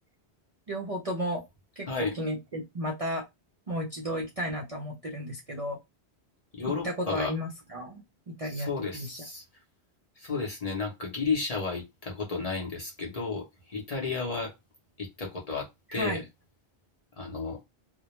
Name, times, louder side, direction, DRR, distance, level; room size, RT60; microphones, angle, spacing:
voice 1, 0.7-1.4 1.8-3.2 3.7-5.8 6.8-9.2 15.9-16.2, equal, 45° right, 0.5 m, -33 dB
voice 2, 6.5-7.3 8.5-9.4 10.2-14.5 15.0-16.2 17.2-17.6, left 4 dB, 40° left, 0.6 m, -32 dB
2.2 x 2.1 x 2.9 m
omnidirectional pair, 1.1 m